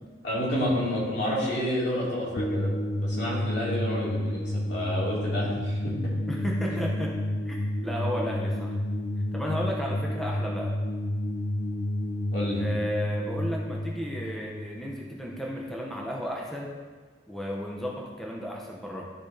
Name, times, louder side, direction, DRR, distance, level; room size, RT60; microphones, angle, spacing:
voice 1, 0.2-2.7 3.0-6.1 6.7-6.8 12.3-12.6, equal, 65° left, -6 dB, 2.7 m, -29 dB
sound 1, 2.4-15.5, left 1 dB, 40° left, 0.4 m, -30 dB
voice 2, 6.3-7.1 7.5-8.8 9.3-10.7 12.6-16.7 17.3-19.0, equal, ahead, -2 dB, 0.8 m, -33 dB
12.0 x 6.8 x 2.7 m, 1.5 s
head